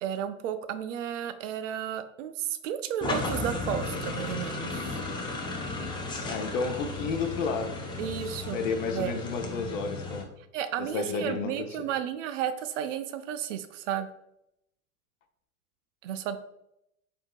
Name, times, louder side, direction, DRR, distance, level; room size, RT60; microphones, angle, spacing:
voice 1, 0.0-5.0 8.0-8.6 8.9-9.2 10.5-14.1 16.0-16.4, right 9 dB, 65° right, 0.5 m, -33 dB
sound 1, 3.0-10.2, left 2 dB, 10° left, 0.4 m, -34 dB
voice 2, 6.2-7.8 8.5-10.3 10.8-11.8, left 4 dB, 65° left, 0.7 m, -31 dB
4.3 x 2.7 x 2.2 m
hypercardioid pair, 90°, 42 cm